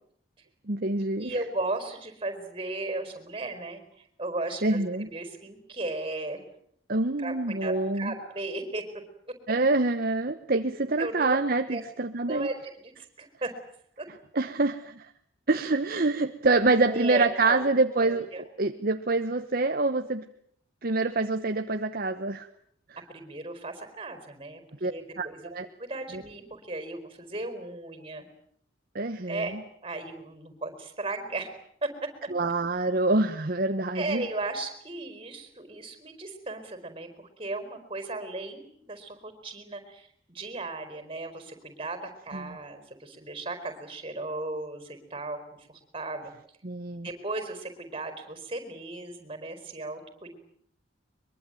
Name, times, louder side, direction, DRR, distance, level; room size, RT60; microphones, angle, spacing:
voice 1, 0.7-1.3 4.6-5.1 6.9-8.1 9.5-12.5 14.3-15.1 15.5-20.2 20.8-22.5 24.8-24.9 25.2-25.7 26.1-26.2 28.9-29.6 32.3-34.3 42.3-42.6 46.6-47.1, right 3 dB, 45° right, 8 dB, 1.1 m, -26 dB
voice 2, 1.2-6.4 7.2-8.8 11.0-11.4 11.7-11.8 12.2-13.5 14.0-14.1 16.9-17.6 17.9-18.4 23.1-25.5 25.8-28.3 29.3-29.6 29.8-31.5 31.8-32.3 33.9-45.4 45.7-46.3 47.0-50.4, right 2 dB, 25° right, 9 dB, 4.6 m, -36 dB
23.0 x 23.0 x 9.1 m, 0.65 s
head